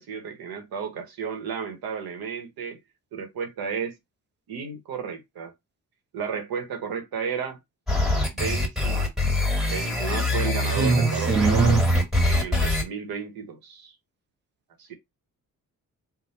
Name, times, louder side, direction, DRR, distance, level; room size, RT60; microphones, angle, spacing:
voice 1, 0.0-2.8 3.1-4.0 4.5-5.5 6.1-7.6 8.3-9.1 9.7-11.8 12.2-13.9 14.8-14.9, right 6 dB, 85° right, 1.2 m, -33 dB
sound 1, 7.9-12.8, left 1 dB, ahead, 1.5 m, -24 dB
voice 2, 10.8-11.8, right 4 dB, 30° right, 0.5 m, -21 dB
3.9 x 2.2 x 4.0 m
wide cardioid pair, 160°, 35 cm